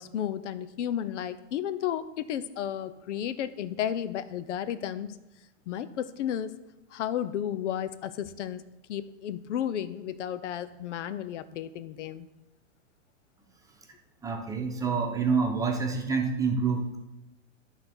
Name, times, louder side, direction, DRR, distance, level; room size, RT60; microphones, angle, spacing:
voice 1, 0.0-5.2 5.7-6.5 6.9-12.3, left 10 dB, 75° left, 14 dB, 0.8 m, -33 dB
voice 2, 14.2-17.0, right 5 dB, 10° right, 2 dB, 0.9 m, -27 dB
12.0 x 4.1 x 6.1 m, 0.95 s
supercardioid pair, 145°, 36 cm